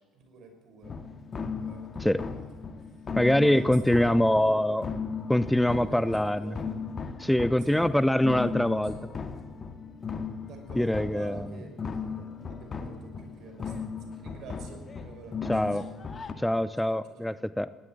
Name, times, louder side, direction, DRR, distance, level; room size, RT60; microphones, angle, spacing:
voice 1, 0.1-1.0 1.6-2.5 3.4-4.7 5.6-6.8 7.7-9.3 10.4-16.0 16.8-17.3, right 4 dB, 50° right, 6 dB, 6.0 m, -48 dB
sound 1, 0.8-16.3, left 5 dB, 35° left, 2.0 m, -37 dB
voice 2, 3.2-4.9 5.3-6.6 7.2-8.9 10.8-11.5 15.5-15.9 16.4-17.7, left 1 dB, 5° left, 15 dB, 0.7 m, -24 dB
21.0 x 16.5 x 9.1 m, 1.3 s
figure-of-eight pair, 60°, 0 cm